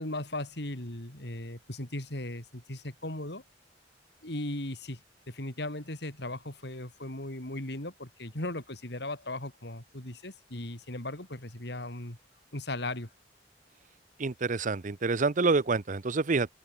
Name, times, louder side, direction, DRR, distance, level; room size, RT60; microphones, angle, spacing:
voice 1, 0.0-3.4 4.2-5.0 5.3-12.2 12.5-13.1, left 1 dB, 65° left, 4.5 m, -37 dB
voice 2, 14.2-16.5, right 4 dB, 45° right, 0.7 m, -27 dB
open air
head